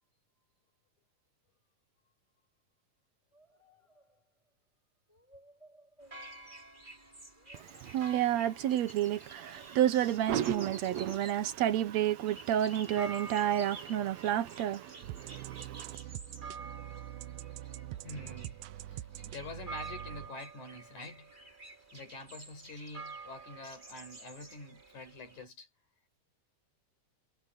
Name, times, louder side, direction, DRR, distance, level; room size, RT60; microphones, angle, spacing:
sound 1, 3.3-4.5 5.1-6.8 7.3-8.6 10.0-10.1, right 1 dB, 10° left, 7.6 m, -62 dB
sound 2, 6.0-25.4, right 3 dB, 15° right, 5.3 m, -49 dB
voice 1, 7.5-16.0, right 11 dB, 70° right, 2.0 m, -30 dB
sound 3, 15.0-20.3, right 13 dB, 85° right, 2.3 m, -44 dB
voice 2, 18.0-18.6 18.9-21.3 21.9-25.7, left 3 dB, 75° left, 6.6 m, -46 dB
omnidirectional pair, 3.4 m